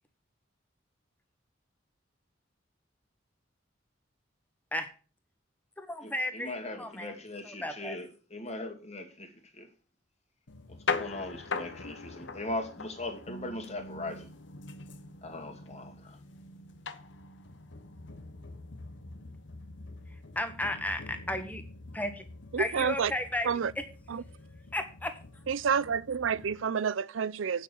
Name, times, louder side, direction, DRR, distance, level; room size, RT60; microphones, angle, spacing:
voice 1, 5.8-7.1 7.4-8.0 20.1-21.6 21.9-22.2 22.6-23.5 23.7-23.8 24.7-25.2, left 1 dB, 10° left, 1.5 m, -34 dB
voice 2, 6.3-9.7 10.7-14.3 15.2-16.2, left 2 dB, 35° left, 2.3 m, -39 dB
sound 1, 10.5-26.6, left 4 dB, 65° left, 1.0 m, -42 dB
voice 3, 22.5-23.1 23.5-23.7 24.1-24.2 25.5-27.6, right 6 dB, 80° right, 0.5 m, -29 dB
8.9 x 6.7 x 7.0 m
head